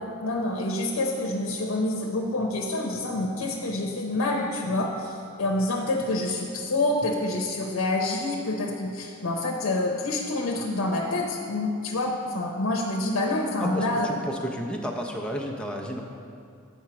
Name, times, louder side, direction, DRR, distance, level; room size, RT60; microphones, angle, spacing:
voice 1, 0.0-14.1, left 2 dB, 90° left, 0 dB, 0.7 m, -27 dB
voice 2, 13.6-16.0, equal, 5° left, 0 dB, 0.6 m, -32 dB
8.1 x 4.3 x 6.1 m, 2.4 s
head